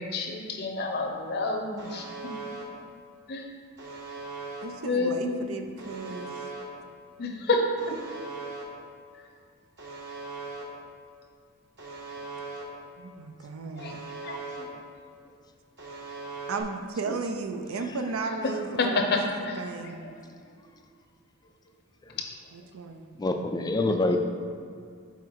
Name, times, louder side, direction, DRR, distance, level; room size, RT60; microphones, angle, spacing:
voice 1, 0.0-2.3 3.3-3.5 4.8-5.6 7.2-7.9 13.7-13.9 14.2-14.7 18.8-19.6 20.0-20.1 20.6-20.7 23.8-24.2, left 3 dB, 50° left, 2 dB, 0.7 m, -29 dB
Alarm, 1.8-2.6 3.8-4.6 5.8-6.6 7.8-8.6 9.8-10.6 11.8-12.6 13.8-14.6 15.8-16.6, right 4 dB, 60° right, 1.2 m, -39 dB
voice 2, 4.6-6.3 13.0-14.0 16.5-19.3 19.6-20.1 22.5-23.1 23.7-23.8, right 4 dB, 80° right, 5 dB, 0.5 m, -35 dB
voice 3, 23.2-24.2, left 2 dB, 20° left, 6 dB, 0.3 m, -25 dB
5.8 x 4.2 x 4.6 m, 2.2 s
head